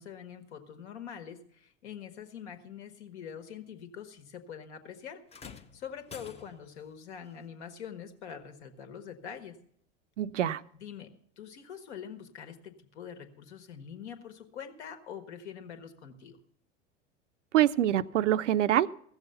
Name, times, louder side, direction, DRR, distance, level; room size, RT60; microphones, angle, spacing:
voice 1, 0.0-5.2 5.7-9.6 10.7-11.1 11.4-16.4, left 8 dB, 65° left, 7 dB, 1.6 m, -44 dB
sound 1, 5.3-6.8 8.3-8.5 9.3-9.4, left 6 dB, 15° left, 0.7 m, -49 dB
voice 2, 10.2-10.6 17.5-18.9, right 12 dB, 75° right, 16 dB, 0.5 m, -25 dB
15.5 x 7.1 x 6.6 m, 0.65 s
figure-of-eight pair, 85°, 37 cm